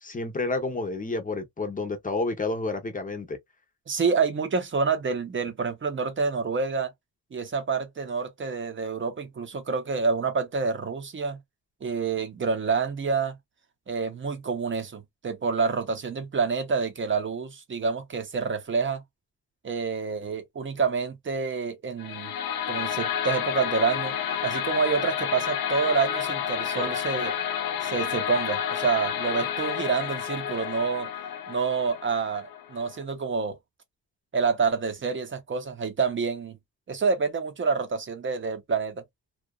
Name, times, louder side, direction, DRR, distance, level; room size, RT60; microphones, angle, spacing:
voice 1, 0.0-3.4, left 3 dB, 25° left, 0.6 m, -30 dB
voice 2, 3.9-6.9 7.3-11.4 11.8-13.4 13.9-19.0 19.6-22.3 22.7-24.1 24.4-27.3 27.8-31.1 31.5-33.6 34.3-36.6 36.9-39.0, right 5 dB, 35° right, 0.7 m, -27 dB
sound 1, 22.0-33.0, left 9 dB, 80° left, 0.7 m, -30 dB
2.7 x 2.3 x 2.2 m
wide cardioid pair, 160°, 36 cm